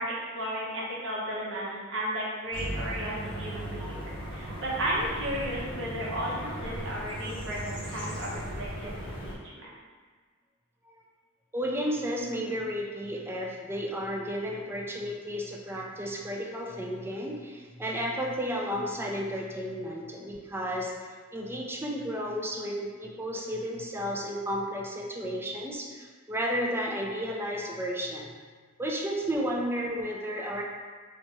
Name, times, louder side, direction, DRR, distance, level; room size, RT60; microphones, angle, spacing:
voice 1, 0.0-9.7, right 1 dB, 70° right, -5 dB, 0.9 m, -34 dB
sound 1, 2.5-9.3, equal, 25° left, 0.8 m, -37 dB
voice 2, 11.5-20.9 21.3-28.3 28.8-30.6, equal, 10° right, -1 dB, 0.4 m, -33 dB
3.3 x 3.0 x 2.9 m, 1.5 s
head